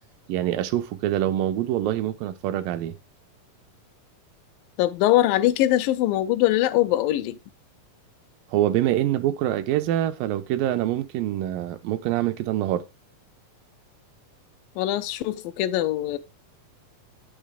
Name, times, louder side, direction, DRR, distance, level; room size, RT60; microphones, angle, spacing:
voice 1, 0.3-3.0 8.5-12.8, right 12 dB, 85° right, 2.4 m, -25 dB
voice 2, 4.8-7.4 14.8-16.2, left 14 dB, 80° left, 2.4 m, -22 dB
8.9 x 6.3 x 3.4 m
omnidirectional pair, 4.0 m